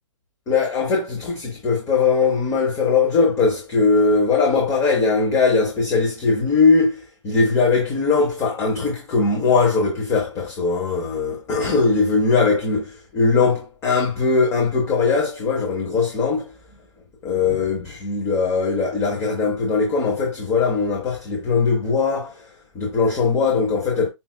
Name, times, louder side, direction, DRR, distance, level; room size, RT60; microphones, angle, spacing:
voice 1, 0.5-16.5 17.2-22.5 22.7-24.1, left 4 dB, 15° left, 0.9 m, -20 dB
5.5 x 2.5 x 2.2 m
hypercardioid pair, 140°, 17 cm